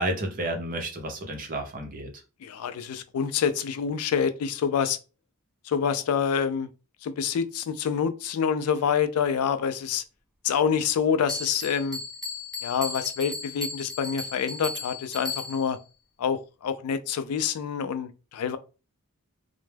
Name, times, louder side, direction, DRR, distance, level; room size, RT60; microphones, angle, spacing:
voice 1, 0.0-2.1, right 1 dB, 40° right, 0.6 m, -31 dB
voice 2, 2.4-5.0 5.7-6.7 7.0-10.0 10.4-12.0 12.6-15.8 16.2-18.6, left 7 dB, 75° left, 0.3 m, -27 dB
Bell, 11.3-15.8, left 3 dB, ahead, 0.6 m, -36 dB
2.1 x 2.0 x 3.2 m
head